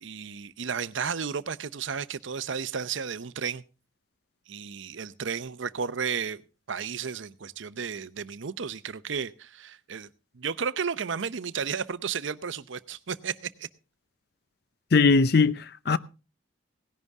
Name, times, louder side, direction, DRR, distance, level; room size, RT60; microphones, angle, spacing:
voice 1, 0.0-3.6 4.5-6.4 6.7-10.1 10.3-13.7, right 6 dB, 80° right, 0.7 m, -33 dB
voice 2, 14.9-16.0, left 4 dB, 55° left, 0.6 m, -20 dB
17.5 x 11.0 x 3.6 m
head